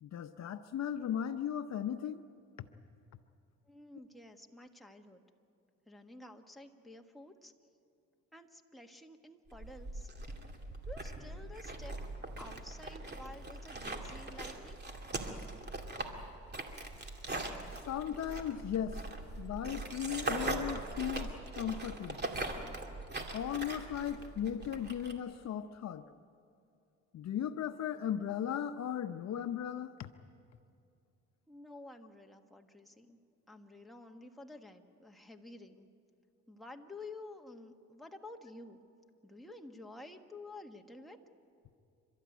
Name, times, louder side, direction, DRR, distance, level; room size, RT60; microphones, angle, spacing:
voice 1, 0.0-2.2 2.6-2.7 17.7-19.0 19.4-22.2 23.3-26.0 27.1-30.1, left 9 dB, 60° left, 9 dB, 0.8 m, -37 dB
voice 2, 3.7-5.2 5.9-7.5 8.3-10.1 10.8-12.0 12.4-14.8 31.5-33.2 33.5-35.9 36.5-38.8 39.2-41.2, left 2 dB, ahead, 2 dB, 1.6 m, -51 dB
sound 1, 9.5-25.1, right 2 dB, 35° right, 2.6 m, -41 dB
29.5 x 13.0 x 9.3 m, 2.5 s
cardioid pair, 90°, 30 cm